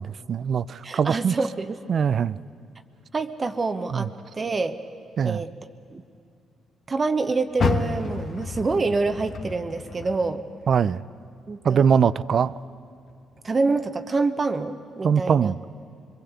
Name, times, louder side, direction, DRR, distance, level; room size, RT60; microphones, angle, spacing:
voice 1, 0.0-1.4 1.9-2.4 3.9-4.1 5.2-5.4 10.7-11.0 11.6-12.5 15.0-15.6, right 7 dB, 55° right, 18 dB, 0.5 m, -22 dB
voice 2, 0.8-1.8 3.1-4.8 5.2-5.5 5.9-6.0 6.9-10.4 11.5-11.9 13.4-15.5, right 3 dB, 35° right, 8 dB, 1.0 m, -26 dB
Car, 7.5-10.8 11.2-12.6 13.1-13.2 13.8-13.9, left 5 dB, 55° left, 1.6 m, -30 dB
23.5 x 22.5 x 8.1 m, 2.5 s
cardioid pair, 90°, 0 cm